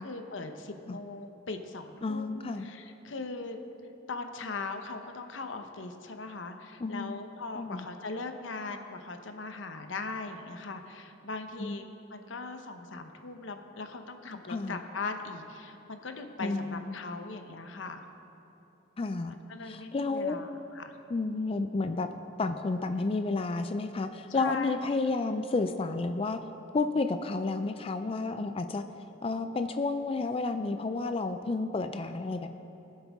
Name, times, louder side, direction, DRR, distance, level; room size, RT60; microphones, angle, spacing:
voice 1, 0.0-3.6 4.1-11.8 12.1-18.0 19.3-20.9 24.3-24.8, left 3 dB, 90° left, 6 dB, 0.9 m, -39 dB
voice 2, 2.0-2.7 6.8-7.2 7.5-7.9 11.6-11.8 14.5-14.8 16.4-17.0 19.0-19.3 19.6-20.4 21.1-22.1 22.4-26.4 26.7-28.9 29.2-32.5, left 3 dB, 30° left, 8 dB, 0.4 m, -31 dB
21.5 x 7.8 x 3.6 m, 3.0 s
head